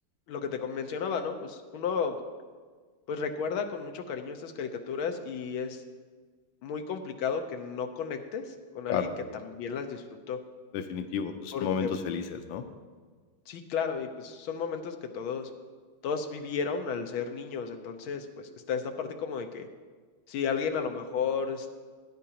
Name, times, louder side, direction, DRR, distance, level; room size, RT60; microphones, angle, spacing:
voice 1, 0.3-2.2 3.1-5.8 6.6-9.1 9.4-10.4 11.5-11.9 13.5-15.5 16.0-19.7 20.3-21.7, left 6 dB, 90° left, 5 dB, 1.6 m, -33 dB
voice 2, 10.7-12.6, left 7 dB, 75° left, 7 dB, 1.4 m, -31 dB
17.0 x 10.0 x 2.9 m, 1.5 s
omnidirectional pair, 2.2 m